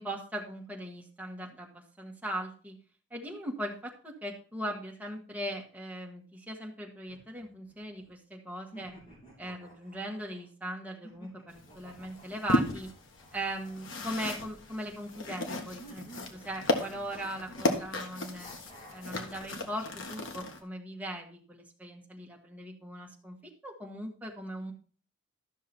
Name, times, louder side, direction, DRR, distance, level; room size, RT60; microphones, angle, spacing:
voice 1, 0.0-2.8 3.1-8.9 9.4-12.9 13.3-18.5 18.9-24.7, right 1 dB, 10° right, -1 dB, 1.6 m, -39 dB
sound 1, 7.1-8.1 8.7-10.4 11.0-14.8 15.8-17.6 18.4-19.2, equal, 40° left, 5.5 m, -53 dB
sound 2, 11.5-20.6, left 1 dB, 70° left, 1.3 m, -35 dB
12.5 x 6.3 x 4.2 m, 0.41 s
head